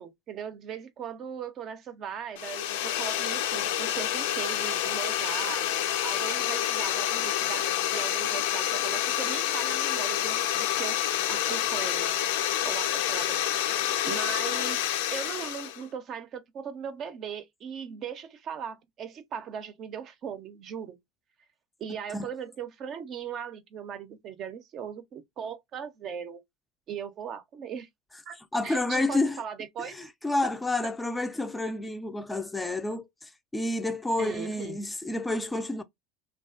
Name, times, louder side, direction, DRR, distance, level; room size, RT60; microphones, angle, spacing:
voice 1, 0.0-5.7 6.0-11.0 11.3-13.7 14.0-21.0 21.8-26.4 26.9-27.9 28.3-28.4 28.6-30.1 30.4-30.5 30.8-30.9 34.2-34.8, right 8 dB, 45° right, 0.5 m, -39 dB
sound 1, 2.4-15.8, left 11 dB, 75° left, 0.4 m, -28 dB
voice 2, 28.5-29.4 29.8-35.8, left 2 dB, 10° left, 0.4 m, -30 dB
2.4 x 2.2 x 2.4 m
hypercardioid pair, 100°, 0 cm